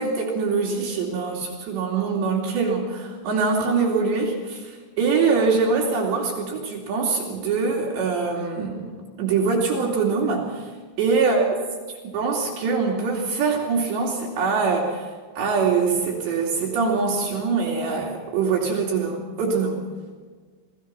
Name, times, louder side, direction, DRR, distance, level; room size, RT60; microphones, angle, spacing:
voice 1, 0.0-8.9 9.2-10.5 11.0-11.5 12.0-15.0 15.4-19.8, right 4 dB, 70° right, -2 dB, 4.8 m, -23 dB
28.5 x 18.5 x 5.9 m, 1.5 s
omnidirectional pair, 5.4 m